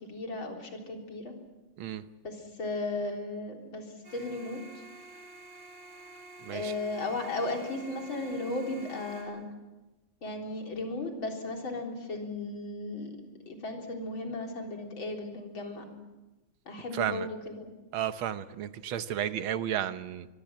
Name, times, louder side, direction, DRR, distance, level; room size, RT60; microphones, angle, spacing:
voice 1, 0.0-1.3 2.2-4.8 6.5-9.4 10.2-13.2 13.5-15.9 16.7-17.7, left 2 dB, 75° left, 2 dB, 4.5 m, -35 dB
sound 1, 4.0-9.2, right 2 dB, 50° right, 7.3 m, -49 dB
voice 2, 6.4-6.7 16.9-17.3 17.9-20.3, right 10 dB, 85° right, 12 dB, 1.8 m, -33 dB
24.0 x 23.5 x 7.5 m, 1.1 s
omnidirectional pair, 2.2 m